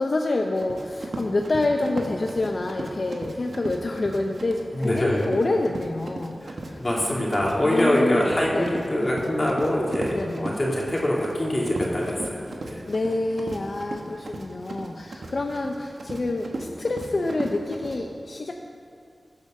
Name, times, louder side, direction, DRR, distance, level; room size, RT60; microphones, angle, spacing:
voice 1, 0.0-6.4 6.7-6.8 7.6-8.8 10.1-10.5 12.9-18.5, left 2 dB, 60° left, 3 dB, 0.7 m, -27 dB
Run, 0.5-18.0, right 2 dB, 75° right, 1.3 m, -36 dB
voice 2, 4.7-5.2 6.4-12.8, left 1 dB, 35° left, -4 dB, 2.9 m, -24 dB
15.5 x 7.3 x 6.6 m, 2.3 s
cardioid pair, 50°, 0 cm